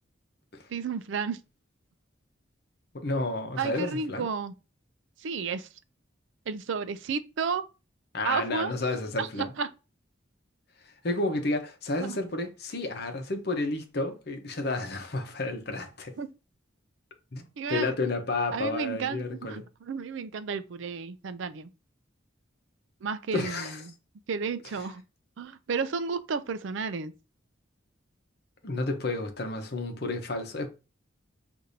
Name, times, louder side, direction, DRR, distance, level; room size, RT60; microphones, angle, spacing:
voice 1, 0.7-1.4 3.6-4.5 5.2-5.7 6.5-7.6 8.2-8.7 9.2-9.7 12.0-12.2 16.2-16.3 17.6-17.9 18.5-21.7 23.0-23.7 24.3-25.0 25.4-27.1, right 5 dB, 70° right, 0.4 m, -32 dB
voice 2, 2.9-4.3 8.1-9.5 10.8-16.2 17.3-19.6 23.3-23.8 28.6-30.7, left 2 dB, 50° left, 0.8 m, -31 dB
6.5 x 2.6 x 2.7 m
head